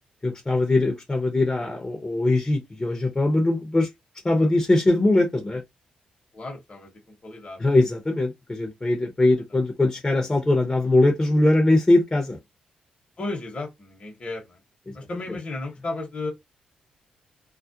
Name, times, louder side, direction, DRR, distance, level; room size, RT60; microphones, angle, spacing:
voice 1, 0.2-3.9 4.2-5.6 7.6-12.4, left 2 dB, 25° left, 0.7 m, -21 dB
voice 2, 6.3-7.7 9.5-9.6 13.2-14.6 14.9-16.3, left 2 dB, 40° left, 1.0 m, -34 dB
2.4 x 2.0 x 2.7 m
cardioid pair, 65°, 3 cm